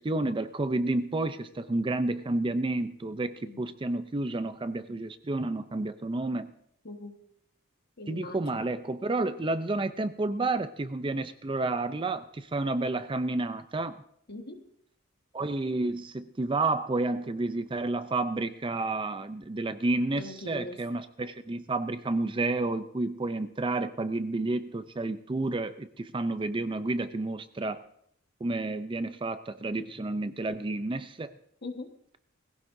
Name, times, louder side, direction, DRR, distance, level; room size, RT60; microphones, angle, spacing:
voice 1, 0.0-6.5 8.1-14.0 15.3-27.8 28.4-31.3, right 2 dB, 25° right, 11 dB, 0.4 m, -30 dB
voice 2, 3.4-3.8 6.8-7.2 8.0-8.6 14.3-14.6 20.1-20.8 31.6-31.9, left 2 dB, 50° left, 5 dB, 1.4 m, -41 dB
21.0 x 15.5 x 2.7 m, 0.70 s
head